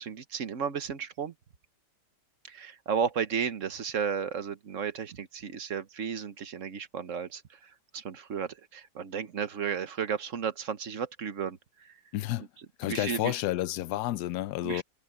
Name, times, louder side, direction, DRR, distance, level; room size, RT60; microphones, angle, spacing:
voice 1, 0.0-1.3 2.5-7.4 7.9-11.9 12.8-13.3 14.6-14.8, right 7 dB, 50° right, 1.3 m, -33 dB
voice 2, 12.1-12.5 12.8-14.8, left 15 dB, 80° left, 1.2 m, -30 dB
omnidirectional pair, 1.8 m